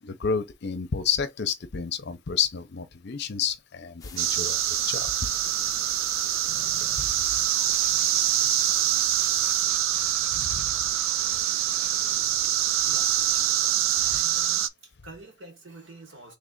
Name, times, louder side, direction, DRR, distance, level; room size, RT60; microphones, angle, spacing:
voice 1, 0.0-5.1 7.0-7.1 10.3-10.7, left 6 dB, 55° left, 0.6 m, -30 dB
sound 1, 4.0-9.6, left 6 dB, 20° left, 0.5 m, -45 dB
sound 2, 4.2-14.7, right 11 dB, 85° right, 0.4 m, -25 dB
sound 3, 6.5-14.5, right 2 dB, 30° right, 1.0 m, -50 dB
voice 2, 8.7-9.1 10.3-10.5 11.7-12.0 12.8-13.7 13.9-16.4, right 2 dB, 65° right, 1.5 m, -49 dB
3.3 x 3.3 x 3.9 m
head